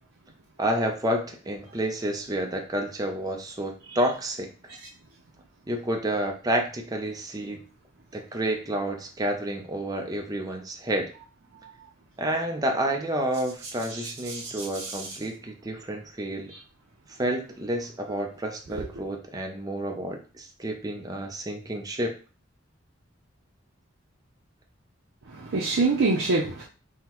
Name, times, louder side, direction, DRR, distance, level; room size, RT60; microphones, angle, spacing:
voice 1, 0.6-4.5 5.7-7.6 8.1-11.1 12.2-16.5 17.1-22.1, right 1 dB, 20° right, 2 dB, 0.5 m, -29 dB
voice 2, 13.9-15.2 16.5-16.6 25.3-26.6, right 3 dB, 70° right, -3 dB, 0.6 m, -27 dB
5.7 x 2.2 x 2.9 m, 0.36 s
head